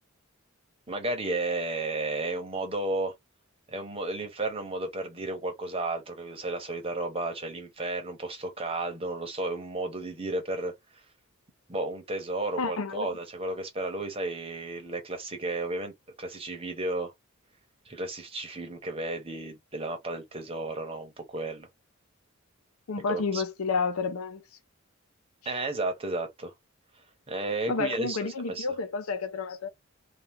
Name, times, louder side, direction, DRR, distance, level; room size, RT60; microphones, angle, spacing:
voice 1, 0.9-3.1 3.7-11.0 11.7-15.9 16.2-17.1 17.9-21.7 23.1-23.4 25.4-26.5 27.3-28.2 28.5-28.7, right 2 dB, 25° right, 1.0 m, -33 dB
voice 2, 12.6-13.1 22.9-24.4 27.7-29.7, left 4 dB, 85° left, 0.7 m, -30 dB
2.9 x 2.4 x 3.5 m
head